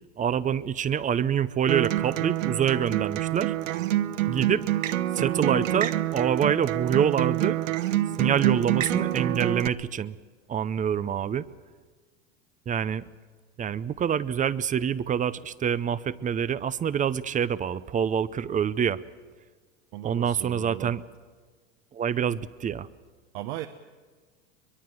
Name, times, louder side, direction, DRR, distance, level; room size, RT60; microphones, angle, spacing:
voice 1, 0.2-3.5 4.3-4.6 5.2-7.6 8.2-10.2 10.5-11.4 12.7-13.0 13.6-19.0 20.0-21.0 21.9-22.9, right 8 dB, 20° right, 17 dB, 0.6 m, -26 dB
Acoustic guitar, 1.7-9.7, right 13 dB, 85° right, 0.9 m, -27 dB
voice 2, 19.9-20.9 23.3-23.7, right 14 dB, 60° right, 8 dB, 1.2 m, -37 dB
23.0 x 22.0 x 7.7 m, 1.5 s
hypercardioid pair, 110°, 38 cm